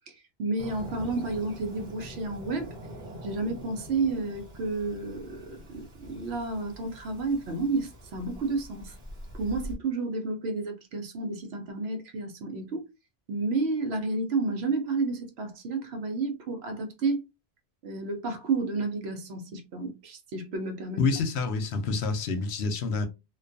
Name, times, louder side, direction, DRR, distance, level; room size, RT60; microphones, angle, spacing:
voice 1, 0.1-2.7 3.2-8.9 9.3-12.9 13.3-17.2 17.8-21.1, right 3 dB, 80° right, 0.9 m, -31 dB
Fireworks, 0.6-9.7, equal, 45° right, 1.1 m, -44 dB
voice 2, 21.0-23.1, left 4 dB, 85° left, 0.9 m, -27 dB
2.4 x 2.3 x 2.5 m
omnidirectional pair, 1.1 m